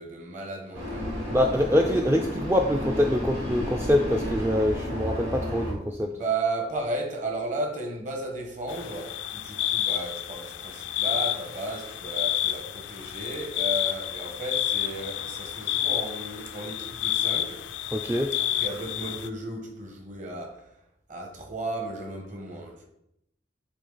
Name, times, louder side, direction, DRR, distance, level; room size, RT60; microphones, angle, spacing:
voice 1, 0.0-2.1 6.0-17.7 18.3-20.8 21.1-22.9, right 2 dB, 40° right, 1.0 m, -34 dB
Vehicle, 0.7-5.7, left 1 dB, 80° right, 2.7 m, -32 dB
voice 2, 1.3-6.1 17.9-18.3, left 1 dB, 15° right, 0.3 m, -24 dB
sound 1, 8.7-19.3, left 12 dB, 80° left, 0.4 m, -30 dB
8.3 x 3.6 x 3.9 m
head